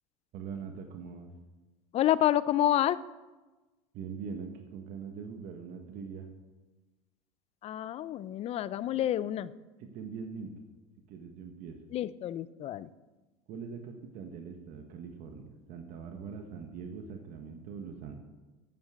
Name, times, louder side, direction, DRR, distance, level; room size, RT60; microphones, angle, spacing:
voice 1, 0.3-1.3 3.9-6.3 8.9-9.0 9.8-10.5 11.1-11.8 13.5-18.2, right 6 dB, 55° right, 4 dB, 1.4 m, -42 dB
voice 2, 1.9-3.0 7.6-9.5 11.9-12.9, left 12 dB, 40° left, 16 dB, 0.5 m, -28 dB
9.3 x 7.2 x 8.2 m, 1.2 s
supercardioid pair, 115°, 17 cm